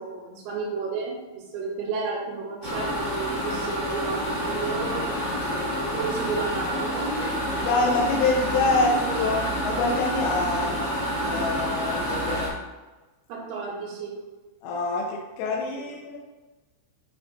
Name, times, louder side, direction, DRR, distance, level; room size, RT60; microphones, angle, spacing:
voice 1, 0.0-5.3 5.9-7.7 8.2-8.3 8.7-9.3 13.3-14.1, right 4 dB, 75° right, -5 dB, 4.5 m, -32 dB
sound 1, 2.6-12.5, equal, 40° left, 1.5 m, -28 dB
voice 2, 7.6-9.4 9.6-10.8 11.2-12.4 14.6-16.2, left 3 dB, 90° left, -1 dB, 3.3 m, -25 dB
11.5 x 4.4 x 2.6 m, 1.2 s
omnidirectional pair, 5.8 m